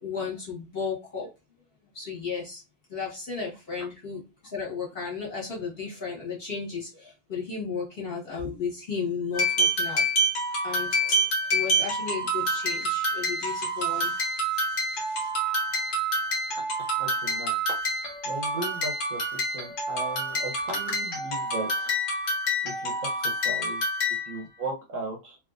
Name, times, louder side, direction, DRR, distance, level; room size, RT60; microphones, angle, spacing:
voice 1, 0.0-1.3 1.9-2.6 2.9-4.2 4.5-10.0 10.6-11.2 11.5-14.3 14.5-14.6 14.9-15.6, left 5 dB, 40° left, -4 dB, 1.5 m, -34 dB
sound 1, 9.3-24.4, right 1 dB, 75° left, 1.6 m, -27 dB
voice 2, 16.8-17.6 18.2-21.9 22.6-23.8 24.3-25.4, right 3 dB, 60° right, 1 dB, 1.0 m, -37 dB
3.3 x 2.7 x 2.4 m, 0.27 s
omnidirectional pair, 1.7 m